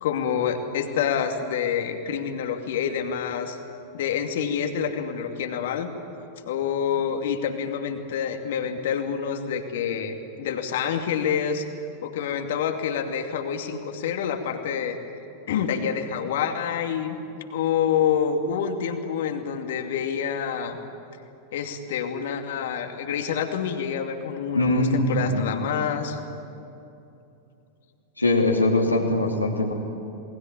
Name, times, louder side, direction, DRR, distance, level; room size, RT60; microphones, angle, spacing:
voice 1, 0.0-3.6 3.9-5.9 6.5-11.6 12.0-15.0 15.5-17.2 17.5-20.8 21.5-26.2, left 7 dB, 55° left, 5 dB, 2.5 m, -27 dB
voice 2, 24.5-25.5 28.2-29.7, left 1 dB, 85° left, -1 dB, 2.9 m, -22 dB
28.5 x 21.0 x 9.0 m, 2.8 s
figure-of-eight pair, 90°, 0 cm